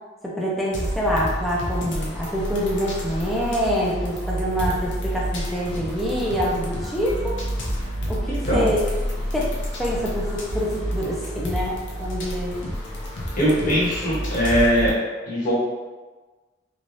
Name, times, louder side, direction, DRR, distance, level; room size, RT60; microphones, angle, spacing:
voice 1, 0.2-7.4 8.1-8.8 9.3-9.5 9.8-12.6, equal, ahead, -5 dB, 0.4 m, -26 dB
sound 1, 0.7-14.9, equal, 70° left, 0.6 m, -29 dB
voice 2, 8.3-8.6 13.3-14.9 15.3-15.5, equal, 45° left, -9 dB, 1.2 m, -21 dB
3.2 x 2.3 x 2.6 m, 1.3 s
head